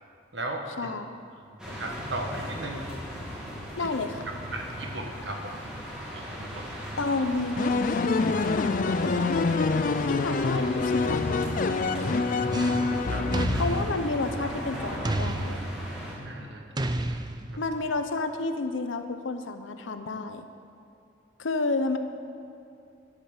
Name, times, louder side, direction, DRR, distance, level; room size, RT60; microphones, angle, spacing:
voice 1, 0.3-0.9 1.5-2.9 3.8-3.9 4.5-5.6 6.1-6.7 12.1-13.3 16.2-16.7 17.5-17.6, right 1 dB, 60° right, 3 dB, 1.4 m, -37 dB
sound 1, 1.6-16.1, equal, 5° right, 2.2 m, -37 dB
voice 2, 3.8-4.1 7.0-11.4 13.6-15.7 17.6-20.5 21.4-22.0, left 3 dB, 75° left, 8 dB, 0.8 m, -31 dB
sound 2, 7.6-14.2, left 4 dB, 40° left, 0.4 m, -26 dB
sound 3, 12.5-12.9 13.3-14.6 15.0-16.1 16.8-17.8, right 2 dB, 20° right, 0.4 m, -32 dB
10.5 x 8.4 x 7.2 m, 2.6 s
head